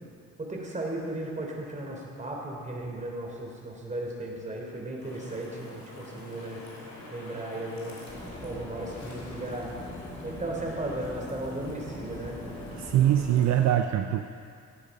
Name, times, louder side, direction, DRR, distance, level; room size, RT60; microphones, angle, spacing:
voice 1, 0.4-6.6 7.1-8.1 8.4-9.9 10.2-12.4, right 1 dB, 25° right, -1 dB, 3.3 m, -36 dB
sound 1, 5.0-13.7, left 2 dB, 60° left, 3.7 m, -46 dB
sound 2, 8.1-13.5, left 1 dB, 15° left, 3.0 m, -42 dB
voice 2, 12.7-14.3, right 11 dB, 65° right, 6 dB, 0.6 m, -23 dB
16.0 x 8.7 x 5.4 m, 2.4 s
cardioid pair, 90°, 30 cm